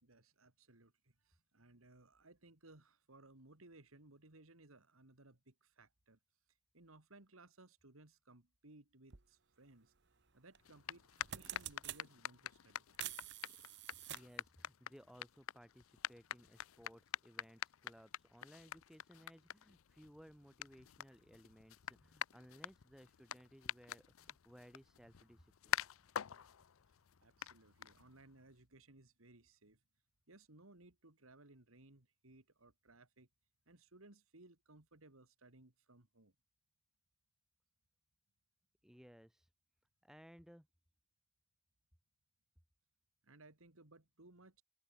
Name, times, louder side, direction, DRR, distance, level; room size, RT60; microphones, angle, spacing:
voice 1, 0.0-6.2 6.5-9.9 10.3-13.1 26.9-29.8 30.3-33.3 33.7-36.3 43.2-44.6, right 2 dB, 80° right, 2.7 m, -63 dB
sound 1, 9.1-9.2 10.5-10.7 11.1-12.0 12.9-14.4, right 12 dB, 55° right, 1.5 m, -47 dB
sound 2, 10.6-28.4, left 10 dB, 80° left, 0.6 m, -47 dB
voice 2, 14.1-25.9 38.8-39.5 40.0-40.7, equal, ahead, 5.6 m, -61 dB
head